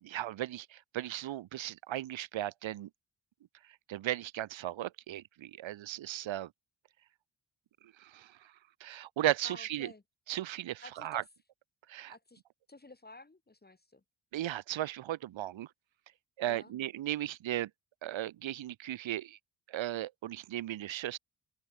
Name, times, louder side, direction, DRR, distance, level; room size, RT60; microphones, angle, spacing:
voice 1, 0.0-2.9 3.9-6.5 8.0-8.5 8.8-9.9 10.3-11.2 11.9-12.2 14.3-15.7 16.4-17.7 18.0-19.4 19.7-21.2, right 13 dB, 85° right, 0.8 m, -36 dB
voice 2, 9.4-10.0 10.8-11.2 12.1-12.4 12.7-14.0 16.4-16.7, left 2 dB, 20° left, 1.9 m, -52 dB
wide cardioid pair, 105°, 45 cm